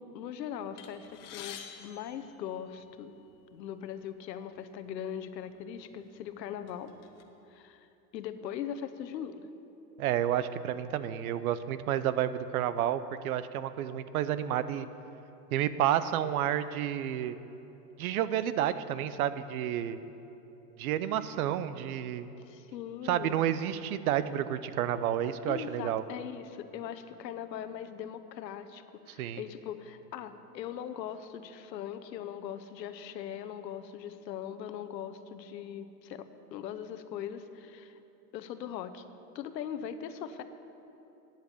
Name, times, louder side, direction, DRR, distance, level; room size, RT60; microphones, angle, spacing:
voice 1, 0.0-3.1 3.5-6.9 7.5-7.9 8.1-9.5 22.5-23.3 25.5-36.3 36.5-38.0 38.3-39.0 39.3-40.4, left 9 dB, 85° left, 10 dB, 0.9 m, -40 dB
sound 1, 0.8-3.1 3.9-4.1 4.4-4.6 5.4-5.6 6.1-7.2, left 9 dB, 45° left, 1.1 m, -48 dB
voice 2, 10.0-14.9 15.5-17.4 18.0-20.0 20.8-22.3 23.0-26.0 29.2-29.4, right 11 dB, 60° right, 14 dB, 0.7 m, -30 dB
9.2 x 8.1 x 8.3 m, 3.0 s
supercardioid pair, 155°, 49 cm